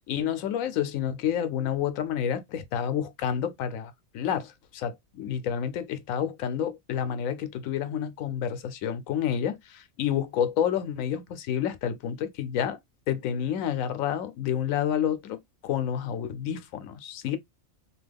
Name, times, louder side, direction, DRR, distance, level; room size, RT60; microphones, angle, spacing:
voice 1, 0.1-12.8 13.1-17.4, left 9 dB, 85° left, 1.0 m, -29 dB
2.9 x 2.3 x 3.3 m
omnidirectional pair, 1.4 m